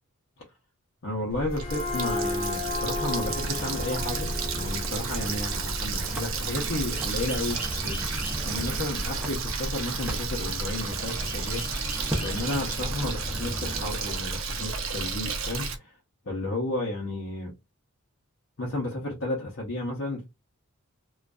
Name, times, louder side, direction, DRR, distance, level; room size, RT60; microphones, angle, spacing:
voice 1, 1.0-8.0 8.5-11.9 12.2-16.0 16.2-17.5 18.6-20.2, left 1 dB, 60° left, 0.7 m, -32 dB
sound 1, 1.2-6.7, left 3 dB, 25° left, 0.7 m, -35 dB
Water tap faucet, 1.3-15.8, right 4 dB, 60° right, 0.5 m, -32 dB
sound 2, 3.2-13.9, equal, 5° right, 0.5 m, -36 dB
2.5 x 2.3 x 2.2 m
head